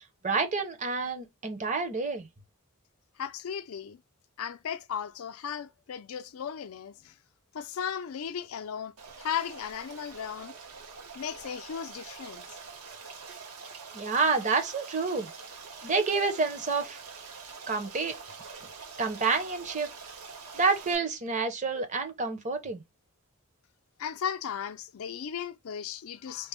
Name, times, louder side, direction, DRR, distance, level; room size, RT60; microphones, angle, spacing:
voice 1, 0.0-2.3 13.9-15.3 15.8-17.0 17.7-18.1 19.0-19.9 20.5-22.8, right 4 dB, 35° right, 0.7 m, -28 dB
voice 2, 3.2-4.0 4.4-7.1 7.5-8.9 9.2-10.5 11.1-12.6 24.0-26.5, left 8 dB, 70° left, 0.4 m, -36 dB
Stream, 9.0-20.9, right 5 dB, 80° right, 1.1 m, -45 dB
4.3 x 2.1 x 3.5 m
head